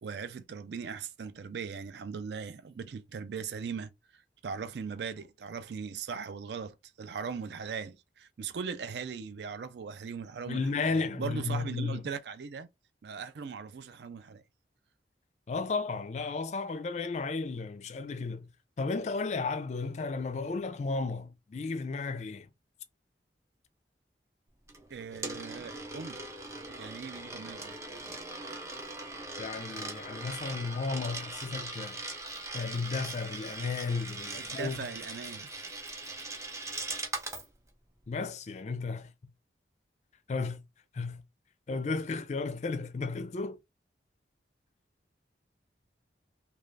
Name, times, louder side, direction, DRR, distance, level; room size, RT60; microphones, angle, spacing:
voice 1, 0.0-12.7 13.0-14.4 24.9-26.3 26.8-27.7 34.3-35.5, right 6 dB, 70° right, 0.4 m, -39 dB
voice 2, 10.5-12.0 15.5-18.5 18.8-22.5 29.4-32.0 32.5-34.9 38.1-39.1 40.3-40.6 40.9-41.2 41.7-43.6, left 4 dB, 40° left, 0.4 m, -34 dB
Coin (dropping), 24.7-37.5, right 2 dB, 15° right, 0.5 m, -40 dB
2.4 x 2.3 x 3.2 m
head